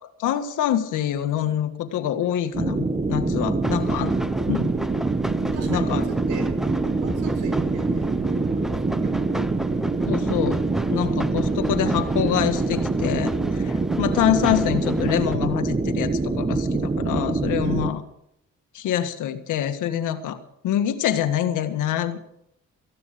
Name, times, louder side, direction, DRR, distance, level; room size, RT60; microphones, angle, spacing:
voice 1, 0.0-4.1 4.5-4.7 5.7-6.1 10.1-10.6 10.9-18.0 18.7-20.4 20.6-22.2, left 11 dB, 85° left, 8 dB, 1.8 m, -25 dB
sound 1, 2.5-17.9, right 3 dB, 20° right, 1.4 m, -25 dB
sound 2, 3.6-15.3, equal, ahead, 0.6 m, -34 dB
voice 2, 5.4-9.3 17.6-17.9, right 4 dB, 85° right, 7 dB, 4.6 m, -38 dB
18.0 x 15.0 x 5.2 m, 0.76 s
cardioid pair, 90°, 30 cm